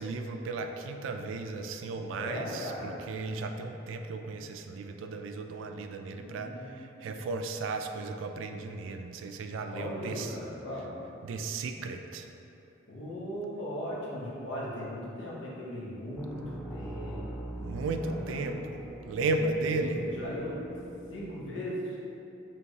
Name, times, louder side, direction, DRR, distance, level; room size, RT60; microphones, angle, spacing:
voice 1, 0.0-10.4 11.2-12.3 17.6-18.6 19.0-20.0, right 3 dB, 85° right, 5 dB, 0.3 m, -35 dB
voice 2, 2.1-3.0 6.0-6.8 9.7-10.9 12.9-17.7 18.0-18.6 19.7-20.6 21.1-22.0, equal, 70° left, -5 dB, 0.9 m, -38 dB
sound 1, 16.2-21.2, right 1 dB, 5° left, 0.4 m, -42 dB
4.6 x 3.0 x 2.7 m, 2.8 s
head